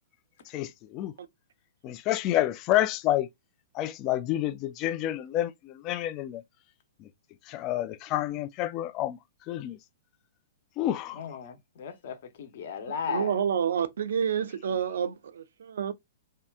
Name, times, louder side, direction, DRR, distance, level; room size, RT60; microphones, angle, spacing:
voice 1, 0.5-1.1 1.8-3.3 3.7-6.4 7.0-7.1 7.5-9.2 9.5-9.8 10.8-11.2, left 14 dB, 35° left, 0.3 m, -29 dB
voice 2, 11.1-13.4, left 6 dB, 55° left, 0.8 m, -36 dB
voice 3, 13.1-15.9, right 8 dB, 65° right, 0.4 m, -29 dB
2.8 x 2.3 x 3.4 m
figure-of-eight pair, 115°, 0 cm